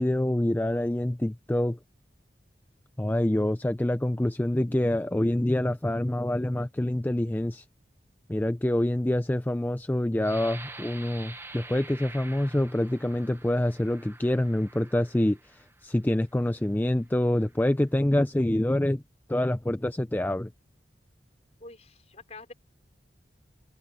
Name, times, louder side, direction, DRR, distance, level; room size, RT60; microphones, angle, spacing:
voice 1, 0.0-1.8 3.0-7.6 8.3-19.0 19.3-20.5, left 1 dB, 10° left, 0.4 m, -26 dB
sound 1, 10.2-15.9 16.5-16.7 17.1-17.6, right 2 dB, 15° right, 1.2 m, -47 dB
voice 2, 21.6-22.5, left 3 dB, 40° left, 4.9 m, -46 dB
open air
head